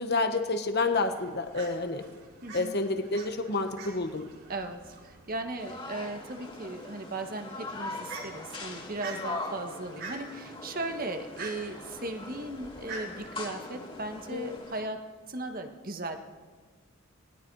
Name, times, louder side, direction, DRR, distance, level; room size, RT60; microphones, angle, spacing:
voice 1, 0.0-2.0 2.5-4.3 14.3-14.6, left 3 dB, 50° left, 7 dB, 1.3 m, -29 dB
Fowl, 1.0-14.6, right 3 dB, 60° right, 7.0 m, -47 dB
voice 2, 2.4-2.8 4.5-16.2, right 2 dB, 40° right, 5 dB, 1.7 m, -37 dB
sound 1, 5.6-14.8, left 2 dB, 25° left, 2.7 m, -41 dB
28.0 x 20.0 x 4.9 m, 1.4 s
head